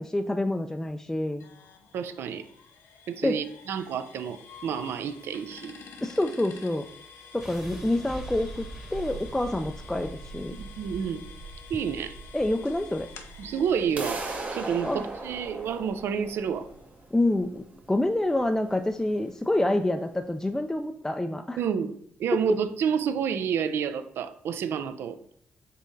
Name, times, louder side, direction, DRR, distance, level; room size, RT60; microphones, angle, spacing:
voice 1, 0.0-1.4 3.2-3.4 6.0-6.9 7.3-10.6 12.3-13.1 14.8-15.0 17.1-21.6 22.3-22.6, left 1 dB, 10° left, 5 dB, 0.3 m, -27 dB
sound 1, 1.4-17.1, left 6 dB, 85° left, 0.5 m, -50 dB
voice 2, 1.9-2.5 3.1-5.7 10.5-11.2 11.7-12.1 13.4-16.7 21.6-21.9 22.2-25.2, right 7 dB, 70° right, 11 dB, 0.4 m, -29 dB
sound 2, 7.4-19.4, right 2 dB, 10° right, 1.0 m, -44 dB
sound 3, 14.0-19.9, right 2 dB, 35° right, 0.8 m, -38 dB
5.4 x 3.5 x 2.6 m, 0.72 s
supercardioid pair, 60°, 4 cm